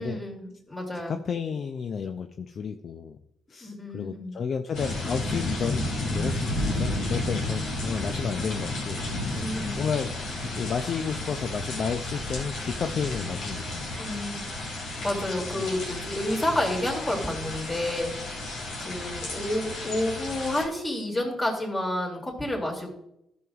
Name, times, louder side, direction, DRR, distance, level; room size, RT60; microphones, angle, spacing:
voice 1, 0.0-1.2 3.6-4.3 9.4-9.9 13.9-14.4 15.0-18.4 18.8-22.9, left 1 dB, 25° left, -1 dB, 2.6 m, -30 dB
voice 2, 1.1-3.2 3.5-5.9 6.1-13.9, left 6 dB, 55° left, 7 dB, 0.4 m, -32 dB
sound 1, 4.7-20.6, left 2 dB, 80° left, 2.4 m, -32 dB
12.5 x 6.2 x 2.4 m, 0.80 s
cardioid pair, 90°, 0 cm